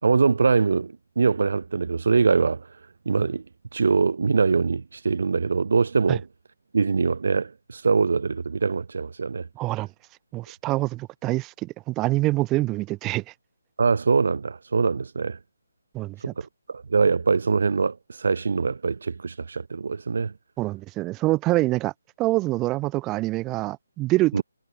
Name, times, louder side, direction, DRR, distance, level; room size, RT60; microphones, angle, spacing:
voice 1, 0.0-2.7 3.0-3.4 3.7-6.3 6.7-9.5 13.8-15.4 16.2-16.3 16.7-20.3 24.3-24.4, right 4 dB, 60° right, 3.2 m, -23 dB
voice 2, 9.6-9.9 10.3-13.2 15.9-16.3 20.6-21.9 22.2-24.4, right 19 dB, 10° right, 0.9 m, -25 dB
hypercardioid pair, 170°, 0 cm